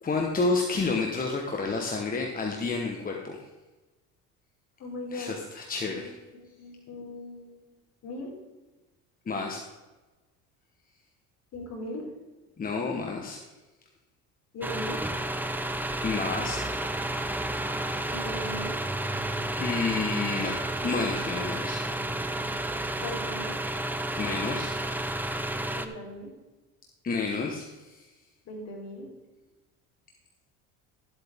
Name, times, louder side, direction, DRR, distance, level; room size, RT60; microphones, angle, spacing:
voice 1, 0.0-3.4 5.1-6.1 9.3-9.6 12.6-13.4 16.0-16.6 19.6-20.5 20.8-21.8 24.2-24.8 27.0-28.1, left 4 dB, 25° left, 1 dB, 1.3 m, -30 dB
voice 2, 4.8-5.3 5.9-7.6 8.0-8.3 11.5-12.0 14.5-15.0 18.1-18.8 23.0-23.6 25.7-26.3 28.5-29.1, left 1 dB, 50° left, -1 dB, 3.9 m, -39 dB
sound 1, 14.6-25.9, right 1 dB, 5° right, 0.8 m, -31 dB
13.5 x 8.1 x 3.7 m, 1.2 s
supercardioid pair, 100°, 33 cm